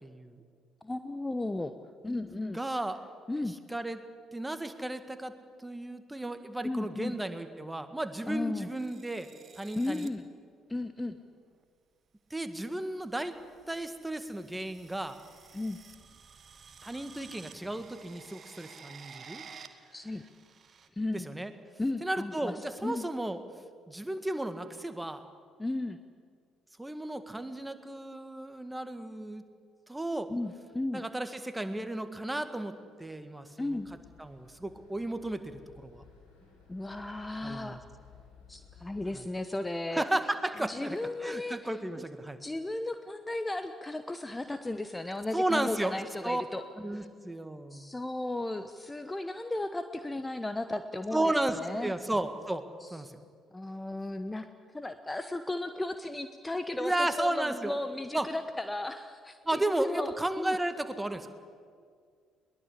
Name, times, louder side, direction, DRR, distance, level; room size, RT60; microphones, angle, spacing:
voice 1, 0.0-0.4 2.5-3.0 3.4-4.0 4.3-5.3 5.6-9.3 9.6-10.1 12.3-13.3 13.7-15.2 16.8-19.4 21.1-21.5 22.0-23.4 23.9-25.2 26.8-29.4 29.9-30.3 30.9-33.8 34.2-36.0 37.4-37.8 39.1-39.2 39.9-42.4 45.3-45.9 46.2-46.4 46.8-47.9 51.1-52.6 52.9-53.1 56.8-57.8 58.1-58.3 59.4-61.3, right 1 dB, 10° right, 9 dB, 1.9 m, -34 dB
voice 2, 0.8-1.7 2.0-2.6 3.3-3.5 6.6-7.1 8.3-8.7 9.8-10.3 10.7-11.1 15.5-15.8 19.9-20.2 21.0-21.3 21.8-22.5 22.8-23.1 25.6-26.0 30.3-31.0 33.6-33.9 36.7-37.9 38.5-40.0 40.6-42.0 42.4-46.6 46.9-47.1 47.7-51.3 51.6-51.9 52.8-52.9 53.5-54.5 54.7-60.6, left 2 dB, 15° left, 9 dB, 1.1 m, -35 dB
sound 1, 8.7-10.1 11.3-11.6 12.6-20.9, right 6 dB, 40° right, 1.6 m, -53 dB
sound 2, 33.7-39.1, left 6 dB, 80° left, 5.8 m, -57 dB
22.0 x 19.5 x 8.5 m, 2.1 s
figure-of-eight pair, 50°, 0 cm